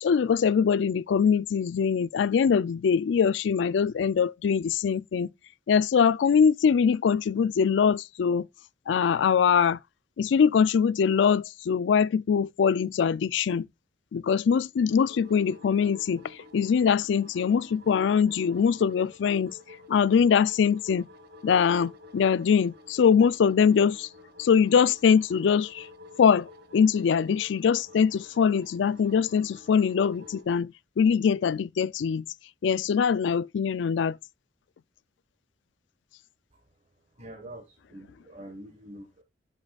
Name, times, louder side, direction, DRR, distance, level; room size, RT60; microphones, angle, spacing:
voice 1, 0.0-5.3 5.7-8.5 8.9-9.8 10.2-13.7 14.1-19.6 19.9-21.1 21.4-24.1 24.4-25.9 26.2-32.2 32.6-34.2, left 6 dB, 75° left, 0.3 m, -23 dB
sound 1, 14.9-30.4, left 2 dB, 60° right, 1.5 m, -51 dB
voice 2, 37.2-39.2, right 1 dB, 40° right, 1.4 m, -45 dB
9.6 x 7.4 x 2.3 m
head